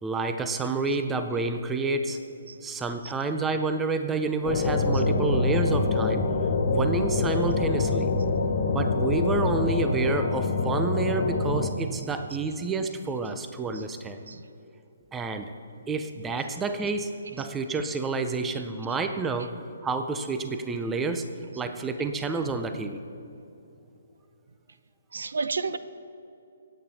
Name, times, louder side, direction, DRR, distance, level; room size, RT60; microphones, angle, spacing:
voice 1, 0.0-2.2 2.6-6.2 6.7-8.1 8.7-14.2 15.1-15.5 15.9-21.3 21.6-23.0, right 3 dB, 10° right, 8 dB, 0.5 m, -29 dB
sound 1, 4.4-11.7, left 3 dB, 45° left, 1.6 m, -25 dB
voice 2, 25.1-25.8, right 4 dB, 80° right, 13 dB, 0.7 m, -32 dB
24.0 x 8.7 x 4.2 m, 2.8 s
hypercardioid pair, 170°, 0 cm